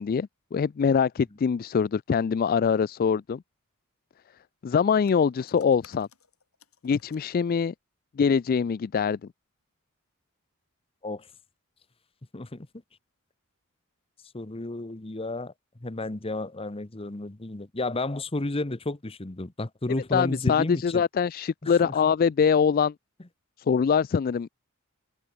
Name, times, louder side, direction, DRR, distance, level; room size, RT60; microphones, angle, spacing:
voice 1, 0.0-3.4 4.6-6.1 6.8-7.7 8.2-9.2 20.1-22.9 23.7-24.5, left 6 dB, 45° left, 0.3 m, -23 dB
sound 1, 5.1-7.2, left 7 dB, 85° left, 6.4 m, -57 dB
voice 2, 12.3-12.7 14.3-15.5 15.8-21.0 21.6-21.9, left 2 dB, 25° left, 1.0 m, -32 dB
head